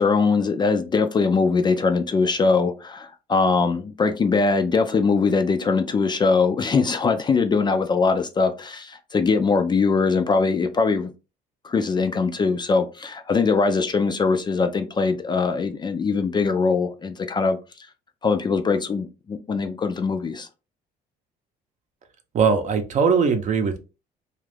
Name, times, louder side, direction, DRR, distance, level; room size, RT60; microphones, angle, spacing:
voice 1, 0.0-11.1 11.6-17.6 18.2-20.5, left 4 dB, 25° left, 0.4 m, -22 dB
voice 2, 22.3-23.8, right 5 dB, 45° right, 0.6 m, -20 dB
2.5 x 2.4 x 3.3 m
cardioid pair, 110°, 17 cm